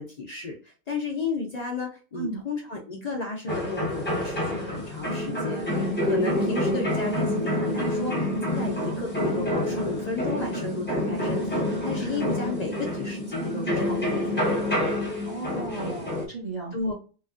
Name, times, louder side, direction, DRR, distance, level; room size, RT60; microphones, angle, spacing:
voice 1, 0.0-8.3 8.6-11.4 11.8-14.7 16.7-16.9, left 3 dB, 60° left, 0 dB, 0.4 m, -33 dB
sound 1, 3.5-16.3, left 1 dB, 10° left, 0.6 m, -28 dB
voice 2, 11.9-12.3 15.3-16.8, right 3 dB, 40° right, -3 dB, 0.7 m, -35 dB
2.9 x 2.4 x 2.4 m, 0.35 s
omnidirectional pair, 1.5 m